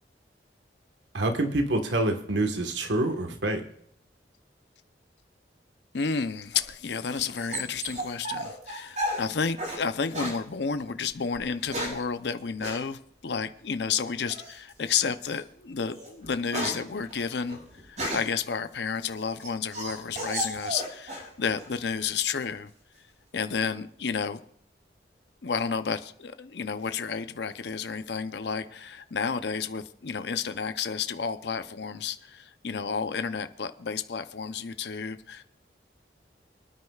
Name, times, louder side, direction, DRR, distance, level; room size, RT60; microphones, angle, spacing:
voice 1, 1.1-3.6, right 2 dB, 85° right, 5 dB, 1.4 m, -26 dB
voice 2, 5.9-17.6 17.9-22.7 23.3-24.4 25.4-35.4, left 6 dB, 75° left, 10 dB, 0.6 m, -31 dB
sound 1, 6.5-9.8 10.1-10.4 11.3-12.1 12.6-12.8 14.3-14.7 15.2-15.4 15.8-18.4 19.0-21.3 21.6-22.2, equal, 40° right, 6.1 m, -34 dB
28.5 x 9.7 x 2.4 m, 0.68 s
head